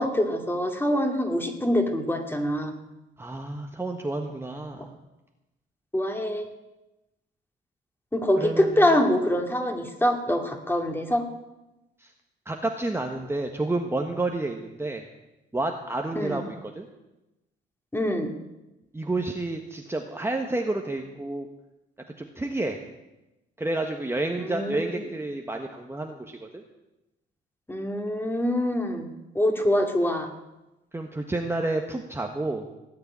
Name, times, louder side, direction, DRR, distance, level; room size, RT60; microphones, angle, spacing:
voice 1, 0.0-2.7 4.8-4.9 5.9-6.5 8.1-11.3 16.1-16.4 17.9-18.3 24.4-25.0 27.7-29.1 29.3-30.3, left 1 dB, 10° left, 4 dB, 2.6 m, -25 dB
voice 2, 3.2-4.9 8.4-8.9 12.0-12.1 12.4-15.0 15.5-16.9 18.9-21.5 22.2-22.8 23.6-26.6 30.9-32.6, right 2 dB, 10° right, 3 dB, 1.4 m, -30 dB
18.0 x 6.8 x 9.8 m, 0.99 s
cardioid pair, 90°, 20 cm